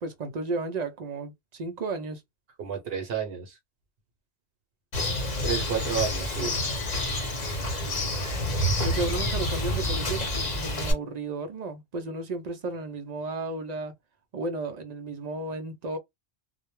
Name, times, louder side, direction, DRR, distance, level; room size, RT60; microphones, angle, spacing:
voice 1, 0.0-2.2 8.8-13.9 14.3-16.0, right 3 dB, 55° right, 0.5 m, -33 dB
voice 2, 2.6-3.6 5.4-6.6, right 8 dB, 70° right, 0.9 m, -31 dB
Bird, 4.9-10.9, left 1 dB, 45° left, 0.9 m, -28 dB
2.1 x 2.1 x 3.0 m
omnidirectional pair, 1.1 m